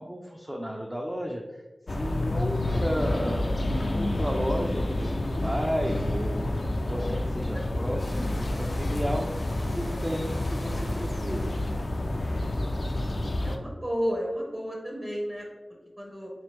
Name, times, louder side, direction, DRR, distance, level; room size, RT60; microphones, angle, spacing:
voice 1, 0.0-1.4 1.9-9.4 9.7-11.5, equal, 15° right, 0 dB, 0.4 m, -33 dB
sound 1, 1.9-13.6, left 1 dB, 60° left, 0.3 m, -29 dB
voice 2, 7.5-7.9 9.9-10.2 13.4-15.5 16.0-16.3, equal, 35° right, -2 dB, 0.9 m, -34 dB
sound 2, 8.0-12.0, left 1 dB, 80° left, 0.7 m, -43 dB
3.2 x 3.0 x 3.2 m, 1.1 s
cardioid pair, 40°, 0 cm